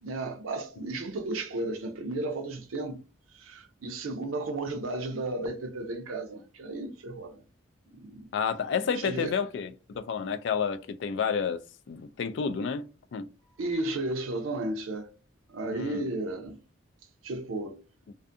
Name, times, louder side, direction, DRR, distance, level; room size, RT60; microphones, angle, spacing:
voice 1, 0.0-3.0 3.3-7.4 8.0-8.2 9.0-9.4 13.5-15.1 15.5-16.6 17.2-17.8, right 2 dB, 90° right, 0.5 m, -34 dB
voice 2, 8.3-11.6 11.9-12.9 13.1-13.3 15.7-16.1, left 6 dB, 60° left, 0.3 m, -30 dB
2.5 x 2.4 x 2.5 m
head